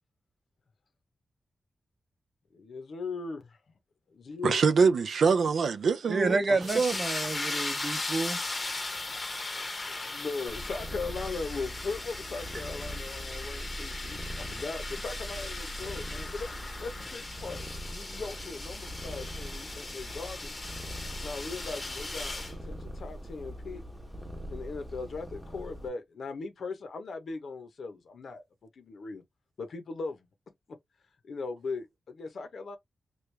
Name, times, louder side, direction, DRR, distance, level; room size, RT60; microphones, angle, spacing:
voice 1, 2.6-3.5 4.1-4.6 9.5-16.5 16.8-20.5 21.2-23.8 24.5-28.4 28.8-29.2 29.6-30.3 30.7-30.8 31.3-32.8, left 4 dB, 70° left, 0.7 m, -39 dB
voice 2, 4.4-6.4 6.7-6.9, right 5 dB, 80° right, 0.4 m, -24 dB
voice 3, 6.1-8.4 12.5-12.6, right 3 dB, 35° right, 0.7 m, -29 dB
sound 1, 6.6-22.5, left 2 dB, 30° left, 0.7 m, -38 dB
Purr, 10.5-25.9, equal, 10° right, 0.9 m, -42 dB
3.1 x 2.3 x 3.2 m
wide cardioid pair, 125°, 0 cm